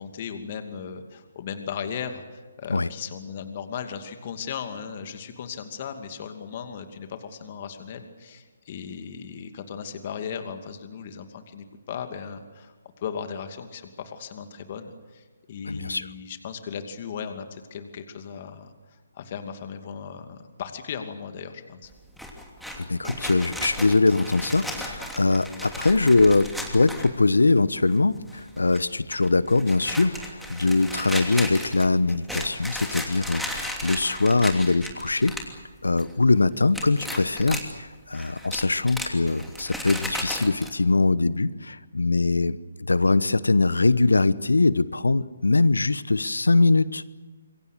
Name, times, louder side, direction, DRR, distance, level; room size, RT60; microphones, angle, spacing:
voice 1, 0.0-21.9, left 7 dB, 40° left, 7 dB, 2.5 m, -37 dB
voice 2, 15.7-16.1 22.8-35.3 35.8-47.1, left 3 dB, 80° left, 17 dB, 1.1 m, -22 dB
sound 1, 21.9-27.5 27.9-28.0 28.3-28.8 29.1-35.6 35.8-36.3 36.7-37.7 38.1-40.7, equal, ahead, 2.9 m, -35 dB
27.5 x 23.0 x 6.8 m, 1.3 s
figure-of-eight pair, 145°, 0 cm